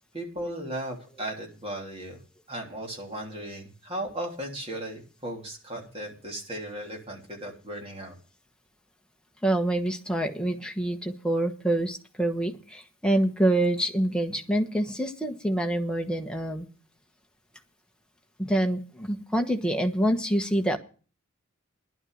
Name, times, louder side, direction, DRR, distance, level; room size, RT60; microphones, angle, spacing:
voice 1, 0.1-2.2 2.5-8.1, right 1 dB, 25° right, 1 dB, 3.2 m, -36 dB
voice 2, 9.4-16.6 18.4-20.8, right 1 dB, 5° left, 3 dB, 1.2 m, -26 dB
11.0 x 9.9 x 6.5 m, 0.38 s
head